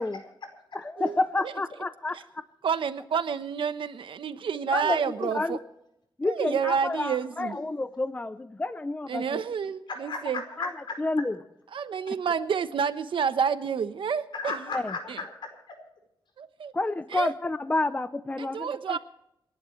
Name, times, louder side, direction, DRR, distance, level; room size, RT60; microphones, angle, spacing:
voice 1, 0.0-0.8 9.9-11.0 14.3-15.8, left 4 dB, 65° left, 4 dB, 4.7 m, -36 dB
voice 2, 0.7-2.4 4.7-5.6 6.2-9.4 10.6-10.7 11.0-11.4 14.7-14.9 16.7-19.0, left 2 dB, 20° left, 12 dB, 0.5 m, -29 dB
voice 3, 2.6-5.6 6.3-7.6 9.1-10.4 11.7-14.6 15.1-15.2 16.4-16.7 17.1-17.3 18.4-19.0, right 7 dB, 80° right, 11 dB, 1.0 m, -29 dB
28.5 x 11.5 x 3.2 m, 0.81 s
wide cardioid pair, 135°, 9 cm